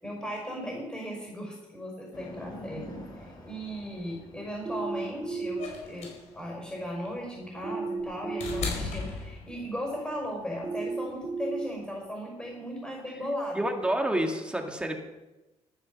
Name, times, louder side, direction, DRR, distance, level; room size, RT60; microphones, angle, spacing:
voice 1, 0.0-2.9 3.2-13.6, equal, 10° left, -1 dB, 5.4 m, -37 dB
sound 1, 2.1-12.0, left 1 dB, 35° left, 4.7 m, -50 dB
sound 2, 4.7-5.6 7.6-8.6 10.6-11.6, right 4 dB, 25° right, 2.3 m, -33 dB
sound 3, 5.6-9.9 11.1-11.2, left 4 dB, 80° left, 5.0 m, -36 dB
voice 2, 13.6-15.0, right 1 dB, 10° right, 3 dB, 2.0 m, -28 dB
13.5 x 9.5 x 7.0 m, 1.0 s
cardioid pair, 120°, 11 cm